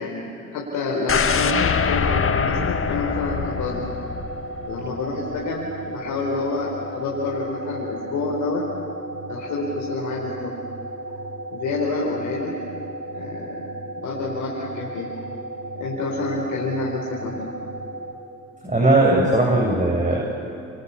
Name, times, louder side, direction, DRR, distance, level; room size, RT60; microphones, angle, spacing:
voice 1, 0.0-3.9 4.6-8.6 9.3-10.5 11.5-12.5 13.1-13.7 14.0-15.1 15.7-17.4, left 3 dB, 75° left, -3 dB, 4.6 m, -28 dB
sound 1, 1.1-5.1 5.4-5.5, left 6 dB, 45° left, 1.8 m, -24 dB
sound 2, 1.9-18.1, right 1 dB, 40° right, 3.8 m, -34 dB
voice 2, 18.6-20.2, right 2 dB, 25° right, -3 dB, 7.4 m, -18 dB
28.5 x 28.5 x 7.1 m, 2.8 s
hypercardioid pair, 55°, 31 cm